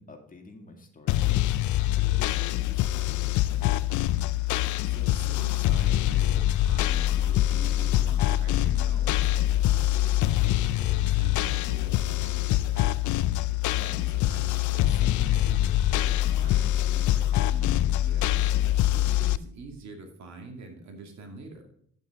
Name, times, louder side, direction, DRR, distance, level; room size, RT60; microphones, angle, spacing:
voice 1, 0.0-3.8 13.7-14.0, left 3 dB, 25° left, 2 dB, 2.2 m, -47 dB
sound 1, 1.1-19.4, left 14 dB, 75° left, 0.5 m, -24 dB
voice 2, 4.8-9.3 9.7-13.1 13.9-18.5 18.9-21.6, right 2 dB, 65° right, 3 dB, 2.4 m, -45 dB
9.4 x 8.0 x 3.7 m, 0.66 s
cardioid pair, 90°, 30 cm